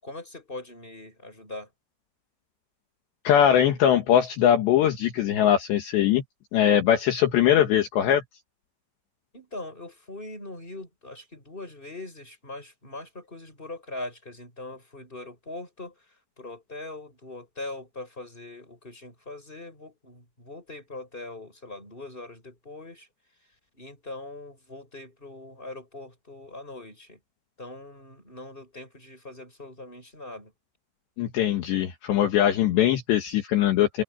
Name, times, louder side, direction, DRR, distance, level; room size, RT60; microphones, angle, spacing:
voice 1, 0.0-1.7 9.3-23.1 23.7-27.2 27.6-30.5, left 2 dB, 10° left, 7.2 m, -41 dB
voice 2, 3.3-6.2 6.5-8.2 31.2-34.0, left 10 dB, 65° left, 3.5 m, -21 dB
open air
omnidirectional pair, 5.7 m